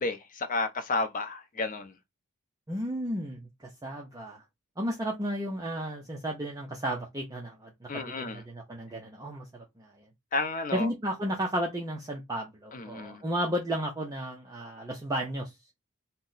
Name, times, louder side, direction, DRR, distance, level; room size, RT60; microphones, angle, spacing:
voice 1, 0.0-1.9 7.9-8.4 10.3-10.9 12.7-13.2, left 3 dB, 35° left, 0.5 m, -32 dB
voice 2, 2.7-4.4 4.8-10.1 10.7-15.6, equal, 15° right, 0.5 m, -33 dB
2.7 x 2.1 x 3.8 m
head